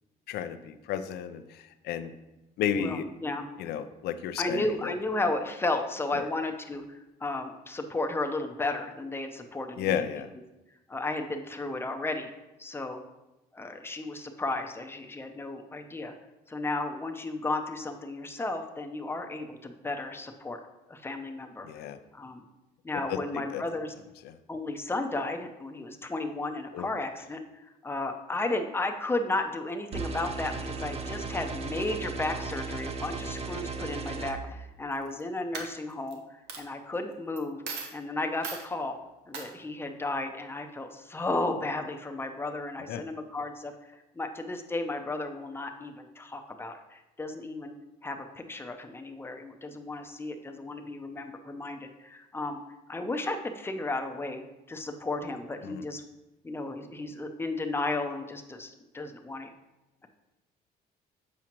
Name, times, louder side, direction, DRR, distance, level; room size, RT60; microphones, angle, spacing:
voice 1, 0.3-2.1 2.6-3.0 3.6-4.9 6.2-6.3 9.8-10.3 21.6-22.0 23.1-23.6 24.2-24.3 26.7-26.9 42.9-43.0 55.6-55.8, left 9 dB, 75° left, 11 dB, 0.5 m, -33 dB
voice 2, 2.8-3.4 4.4-10.0 10.9-12.3 12.6-13.0 13.5-16.1 16.5-20.6 20.9-21.8 22.1-22.4 22.8-23.9 24.5-37.6 37.9-39.0 39.3-43.7 44.1-47.7 48.0-52.6 52.9-54.4 54.7-56.0 56.4-59.5, left 2 dB, 15° left, 5 dB, 0.6 m, -34 dB
sound 1, 29.9-34.3, right 4 dB, 35° right, 0.7 m, -36 dB
Coin (dropping), 34.9-35.2 35.5-36.1 36.5-36.6 37.4-37.5 37.6-37.9 38.4-38.7 39.3-39.5, right 5 dB, 80° right, 0.9 m, -37 dB
7.3 x 4.8 x 3.0 m, 1.0 s
cardioid pair, 110°, 17 cm